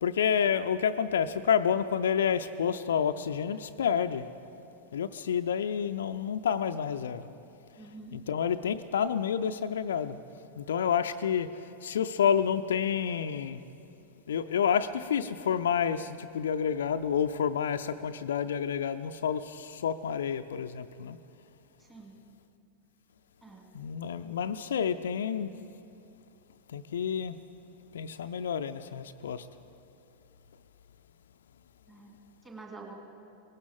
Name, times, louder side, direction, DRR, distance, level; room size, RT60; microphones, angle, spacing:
voice 1, 0.0-4.3 4.9-7.3 8.1-10.2 10.6-11.5 11.8-13.6 14.3-21.2 23.7-25.5 26.7-27.4 27.9-29.5, left 8 dB, 65° left, 0.4 m, -29 dB
voice 2, 7.8-8.1 21.8-22.1 23.4-23.6 31.9-32.2 32.4-32.9, right 3 dB, 15° right, 2.5 m, -47 dB
18.5 x 17.5 x 3.6 m
figure-of-eight pair, 90°, 0 cm